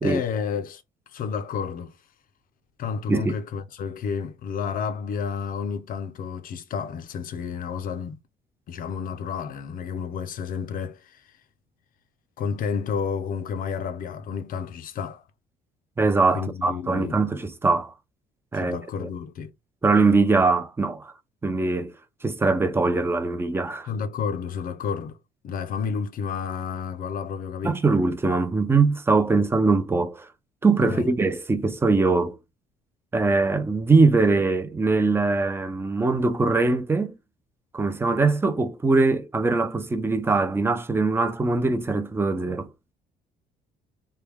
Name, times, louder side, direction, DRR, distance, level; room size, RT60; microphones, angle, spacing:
voice 1, 0.0-0.8 1.1-1.9 2.8-8.2 8.7-11.2 12.4-15.2 16.3-17.2 18.6-19.5 23.9-25.2 25.4-27.8 30.8-31.1, left 6 dB, 55° left, 0.5 m, -31 dB
voice 2, 16.0-17.9 18.5-19.1 19.8-21.1 21.4-21.9 22.2-23.9 27.6-30.3 30.6-32.4 33.1-37.2 37.7-42.7, right 3 dB, 15° right, 0.5 m, -22 dB
3.2 x 2.2 x 3.4 m
cardioid pair, 110°, 17 cm